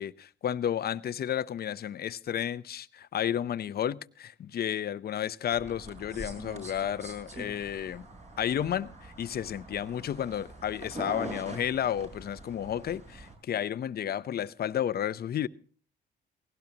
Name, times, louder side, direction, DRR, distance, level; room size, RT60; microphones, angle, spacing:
voice 1, 0.0-8.0 8.4-15.5, left 10 dB, 50° left, 0.7 m, -32 dB
sound 1, 5.5-13.3, right 2 dB, 35° right, 6.5 m, -44 dB
19.0 x 16.5 x 2.8 m
cardioid pair, 90°, 20 cm